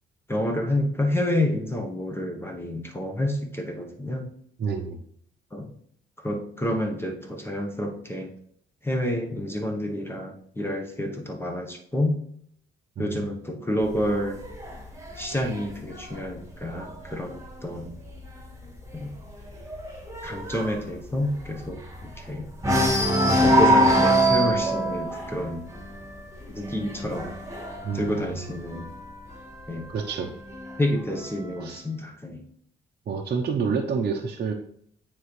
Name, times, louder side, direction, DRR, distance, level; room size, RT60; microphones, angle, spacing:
voice 1, 0.3-4.2 5.5-5.7 6.2-8.3 8.8-12.2 13.0-14.4 15.2-17.9 18.9-19.1 20.2-22.5 23.4-25.6 26.5-27.3 27.9-28.9 29.7-29.8 30.8-32.4, left 1 dB, 10° left, 2 dB, 1.1 m, -29 dB
voice 2, 4.6-5.0 13.0-13.2 27.8-28.4 29.9-30.3 31.6-31.8 33.1-34.5, right 5 dB, 50° right, 0 dB, 0.8 m, -28 dB
sound 1, 13.8-17.4 17.9-18.2 18.4-18.5 18.9-22.2 22.6-29.1 30.0-31.0, right 1 dB, 15° right, 1.7 m, -24 dB
9.2 x 3.7 x 3.3 m, 0.65 s
cardioid pair, 90°, 20 cm